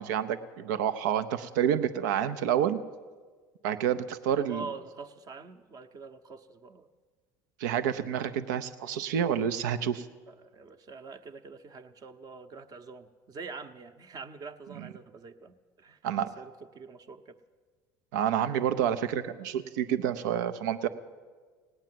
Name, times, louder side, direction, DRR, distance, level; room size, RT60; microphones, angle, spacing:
voice 1, 0.0-2.8 3.6-4.7 7.6-10.0 14.8-14.9 16.0-16.3 18.1-20.9, right 9 dB, 85° right, 10 dB, 0.7 m, -28 dB
voice 2, 4.3-6.9 10.3-16.0 16.4-17.3, right 4 dB, 40° right, 9 dB, 0.9 m, -45 dB
18.0 x 9.0 x 7.6 m, 1.5 s
supercardioid pair, 90°, 10 cm